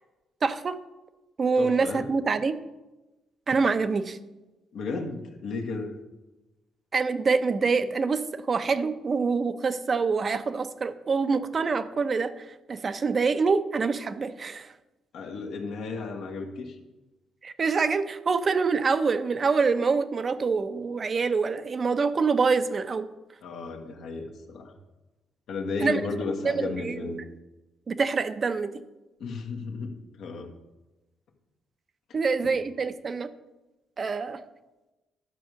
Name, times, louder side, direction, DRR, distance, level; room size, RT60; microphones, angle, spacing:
voice 1, 0.4-0.8 1.4-2.5 3.5-4.2 6.9-14.7 17.4-23.1 25.8-26.0 26.4-27.2 27.9-28.7 32.1-33.3 34.0-34.4, right 4 dB, 40° right, 11 dB, 0.7 m, -26 dB
voice 2, 1.6-2.1 4.7-5.9 15.1-16.8 23.4-24.7 25.5-27.2 29.2-29.9 30.2-30.5 32.4-32.5, left 4 dB, 75° left, 3 dB, 1.5 m, -34 dB
11.0 x 4.9 x 6.8 m, 1.1 s
cardioid pair, 90°, 0 cm